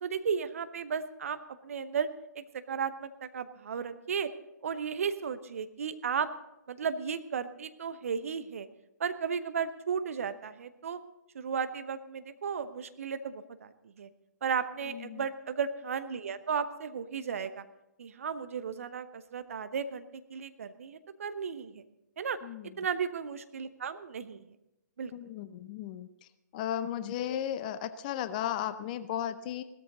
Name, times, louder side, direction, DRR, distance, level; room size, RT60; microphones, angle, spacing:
voice 1, 0.0-2.1 2.3-4.3 4.6-6.3 6.7-8.7 9.0-11.0 11.3-13.7 14.0-14.1 14.4-17.6 18.0-21.8 22.2-22.4 22.8-24.4 25.0-25.1, right 6 dB, 50° right, 11 dB, 0.9 m, -34 dB
voice 2, 14.9-15.3 22.4-22.7 25.1-26.1 26.5-29.6, left 11 dB, 25° left, 13 dB, 0.6 m, -35 dB
17.0 x 13.5 x 3.9 m, 0.89 s
figure-of-eight pair, 130°, 10 cm